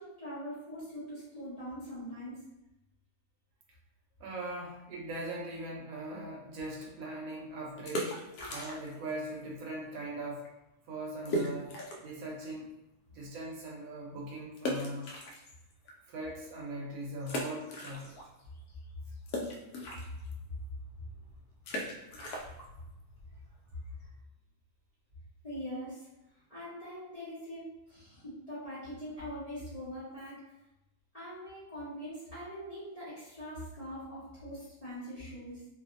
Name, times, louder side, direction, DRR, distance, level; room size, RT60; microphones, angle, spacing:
voice 1, 0.0-2.4 25.4-26.1 26.3-30.4 31.1-35.7, equal, 35° left, -11 dB, 0.6 m, -42 dB
voice 2, 4.2-8.1 8.5-10.5 10.9-12.7 13.1-15.1 16.1-18.1, right 1 dB, 70° right, -2 dB, 1.0 m, -40 dB
sound 1, 7.7-9.1 9.3-9.4 10.0-10.2 10.4-10.5 11.2-12.2 12.6-12.7 14.6-15.9 16.4-16.5 17.2-18.4 18.7-24.2, equal, 80° left, 1.1 m, -38 dB
2.6 x 2.5 x 2.5 m, 0.93 s
omnidirectional pair, 1.6 m